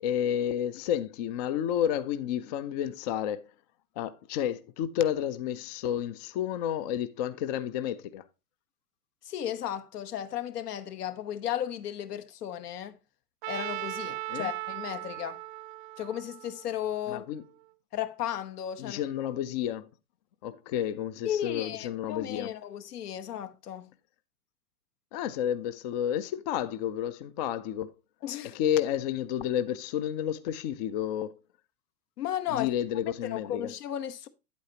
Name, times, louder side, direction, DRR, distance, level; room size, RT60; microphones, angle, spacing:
voice 1, 0.0-3.4 4.0-8.2 14.3-14.5 17.1-17.4 18.8-19.9 20.4-22.5 25.1-27.9 28.5-31.3 32.5-33.7, left 10 dB, 30° left, 0.4 m, -31 dB
voice 2, 9.3-13.0 13.5-15.4 16.0-17.3 17.9-19.0 21.2-23.9 28.2-28.6 32.2-32.7 33.3-34.3, left 10 dB, 75° left, 1.1 m, -34 dB
Trumpet, 13.4-17.5, right 18 dB, 35° right, 0.4 m, -38 dB
8.9 x 8.3 x 2.8 m
hypercardioid pair, 125°, 47 cm